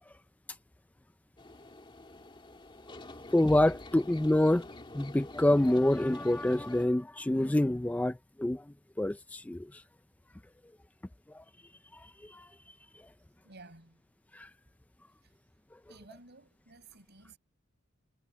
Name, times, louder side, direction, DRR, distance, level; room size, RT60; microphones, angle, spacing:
sound 1, 1.4-6.9, left 2 dB, 25° left, 2.8 m, -47 dB
voice 1, 3.3-4.7 4.9-8.6 9.0-9.8 11.3-11.4 11.9-12.5 14.3-14.5, left 1 dB, 5° left, 0.3 m, -27 dB
voice 2, 13.4-14.0 15.2-15.4 15.9-17.4, right 3 dB, 55° right, 6.5 m, -54 dB
head